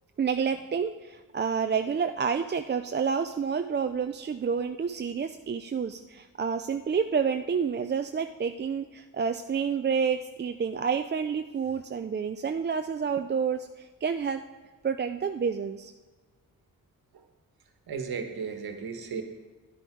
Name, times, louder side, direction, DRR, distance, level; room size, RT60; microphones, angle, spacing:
voice 1, 0.2-14.4 14.8-15.9, right 6 dB, 30° right, 7 dB, 0.4 m, -29 dB
voice 2, 17.9-19.2, right 6 dB, 90° right, 5 dB, 1.3 m, -34 dB
10.5 x 9.8 x 4.6 m, 1.4 s
wide cardioid pair, 95°, 36 cm